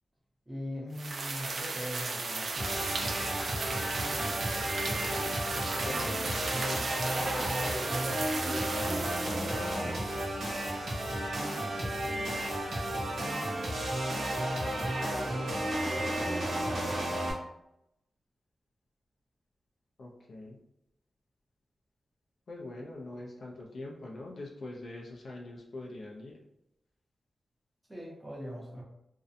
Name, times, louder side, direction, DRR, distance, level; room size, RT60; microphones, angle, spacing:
voice 1, 0.5-2.8 8.7-10.0 14.7-14.9 27.9-28.8, equal, 15° right, -4 dB, 0.7 m, -42 dB
sound 1, 0.9-10.0, right 3 dB, 55° right, 0.3 m, -36 dB
Wind instrument woodwind instrument, 2.2-4.9 5.3-8.7, equal, 25° left, 0.7 m, -53 dB
sound 2, 2.6-17.3, right 1 dB, 80° right, 0.8 m, -32 dB
voice 2, 4.5-5.4 5.8-6.9 7.3-7.8 11.7-12.4 20.0-20.6 22.5-26.4, left 2 dB, 55° left, -2 dB, 0.4 m, -45 dB
2.6 x 2.1 x 2.5 m, 0.84 s
wide cardioid pair, 155°, 0 cm